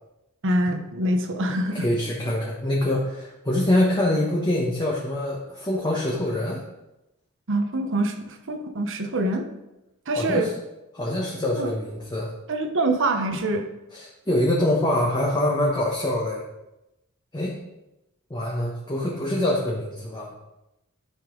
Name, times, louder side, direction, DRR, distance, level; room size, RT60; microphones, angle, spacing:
voice 1, 0.4-1.9 7.5-9.4 10.1-10.5 11.6-11.7 12.5-13.6, right 1 dB, 60° right, 5 dB, 1.0 m, -25 dB
voice 2, 1.7-6.6 10.1-10.5 10.9-12.3 13.9-16.4 17.3-17.5 18.3-20.3, left 1 dB, 20° left, -3 dB, 1.1 m, -24 dB
10.5 x 5.5 x 3.9 m, 0.95 s
head